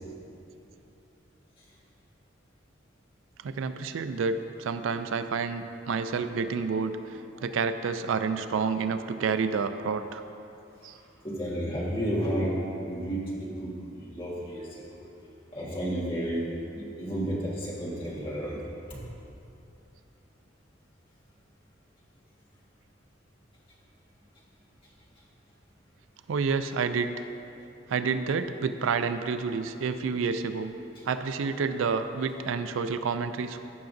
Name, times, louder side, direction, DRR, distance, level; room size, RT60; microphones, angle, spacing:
voice 1, 3.4-10.2 10.8-10.9 26.3-27.1 27.9-30.7 31.1-33.6, right 5 dB, 85° right, 10 dB, 0.4 m, -29 dB
voice 2, 11.2-15.1 15.5-16.5 16.7-18.6 18.9-19.0, equal, 25° left, -6 dB, 1.6 m, -32 dB
15.0 x 5.8 x 2.6 m, 2.7 s
head